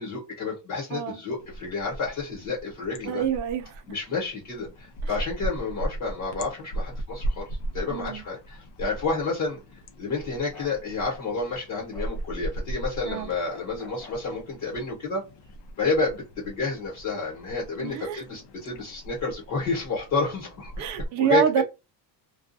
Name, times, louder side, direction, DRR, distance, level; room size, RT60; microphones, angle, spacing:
voice 1, 0.0-3.2 3.9-9.6 10.0-15.3 15.8-20.9 21.1-21.6, left 4 dB, 45° left, 1.1 m, -30 dB
sound 1, 1.4-21.1, right 1 dB, 65° left, 0.7 m, -38 dB
voice 2, 3.0-3.8 7.9-8.2 13.0-13.3 17.8-18.2 20.8-21.6, right 9 dB, 45° right, 0.4 m, -26 dB
Bark, 10.5-10.8 11.9-12.2 13.5-14.2, left 3 dB, 5° left, 0.6 m, -46 dB
2.4 x 2.3 x 2.5 m
cardioid pair, 170°, 43 cm